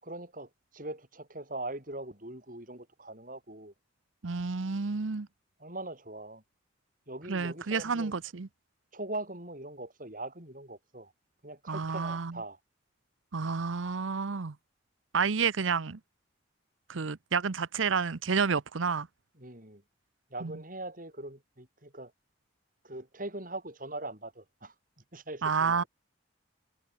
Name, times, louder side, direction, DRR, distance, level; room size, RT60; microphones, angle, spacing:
voice 1, 0.0-3.7 5.6-6.4 7.1-8.2 8.9-11.1 11.4-12.6 19.3-19.8 20.3-22.1 22.8-25.9, right 2 dB, 45° right, 6.6 m, -41 dB
voice 2, 4.2-5.3 7.3-8.5 11.7-12.3 13.3-14.5 15.1-16.0 16.9-19.1 25.4-25.8, right 5 dB, 90° right, 0.8 m, -30 dB
head